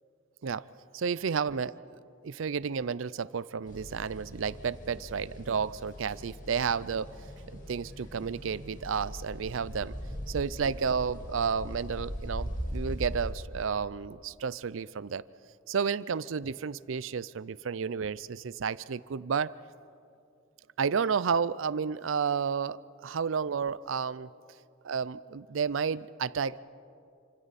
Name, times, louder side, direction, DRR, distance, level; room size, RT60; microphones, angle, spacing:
voice 1, 0.9-1.7 2.2-7.1 7.5-9.9 10.3-15.2 15.7-19.5 20.8-24.3 24.8-26.6, right 6 dB, 70° right, 19 dB, 0.5 m, -31 dB
sound 1, 3.7-13.3, equal, 40° left, 2.2 m, -40 dB
28.0 x 26.0 x 4.2 m, 2.5 s
head